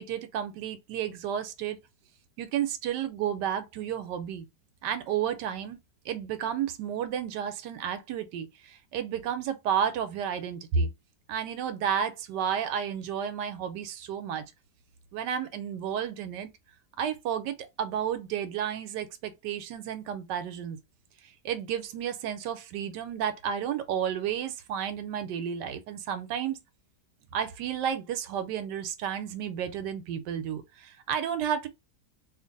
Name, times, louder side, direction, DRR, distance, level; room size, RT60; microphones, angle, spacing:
voice 1, 0.0-1.8 2.4-4.5 4.8-5.8 6.1-10.9 11.3-14.4 15.1-16.5 17.0-20.8 21.4-26.6 27.3-31.7, right 8 dB, 80° right, 1.2 m, -32 dB
2.8 x 2.5 x 3.8 m
omnidirectional pair, 1.9 m